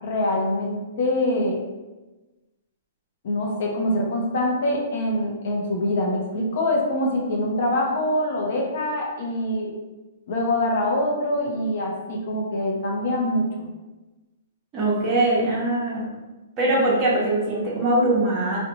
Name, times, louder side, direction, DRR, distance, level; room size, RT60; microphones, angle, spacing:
voice 1, 0.0-1.6 3.2-9.7 10.3-13.7, left 1 dB, 60° left, 0 dB, 0.6 m, -24 dB
voice 2, 14.7-16.1 16.6-18.6, right 1 dB, 25° right, -5 dB, 0.7 m, -22 dB
2.5 x 2.1 x 2.8 m, 1.1 s
hypercardioid pair, 150°, 0 cm